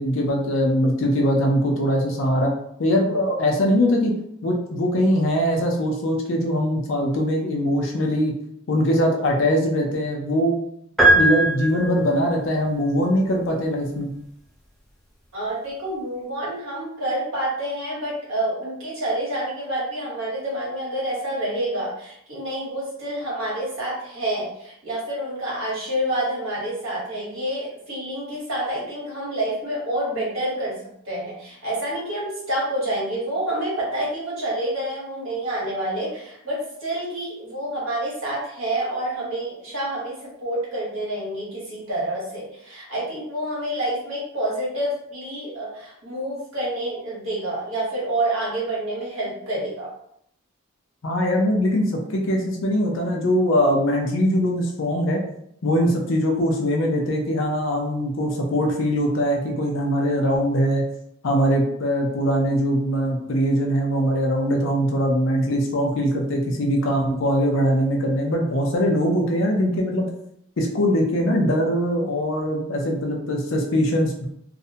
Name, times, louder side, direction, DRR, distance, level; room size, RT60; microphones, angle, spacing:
voice 1, 0.0-2.5 2.8-4.1 4.4-8.3 8.7-10.6 11.1-14.1 51.0-55.2 55.6-60.8 61.2-70.1 70.6-74.2, equal, 60° left, 0 dB, 0.5 m, -22 dB
sound 1, 11.0-12.3, right 1 dB, ahead, 0.5 m, -18 dB
voice 2, 15.3-30.7 31.0-49.9, right 1 dB, 70° right, -5 dB, 1.1 m, -28 dB
2.4 x 2.1 x 2.7 m, 0.73 s
head